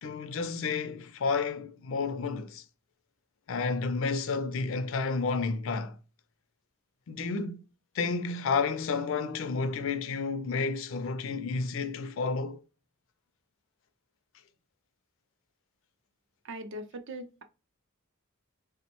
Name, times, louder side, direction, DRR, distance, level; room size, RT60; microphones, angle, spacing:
voice 1, 0.0-2.6 3.5-6.0 7.1-7.6 7.9-12.6, left 4 dB, 60° left, 0.4 m, -31 dB
voice 2, 16.4-17.4, right 1 dB, 60° right, 0.5 m, -40 dB
3.3 x 2.1 x 2.9 m
head